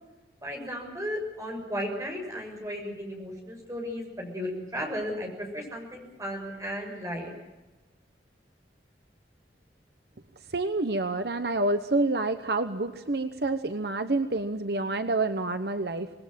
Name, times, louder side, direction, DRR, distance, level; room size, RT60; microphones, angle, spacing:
voice 1, 0.4-7.3, equal, 20° right, 1 dB, 6.7 m, -35 dB
voice 2, 10.5-16.1, right 2 dB, 65° right, 9 dB, 1.1 m, -28 dB
26.5 x 20.0 x 7.7 m, 1.1 s
head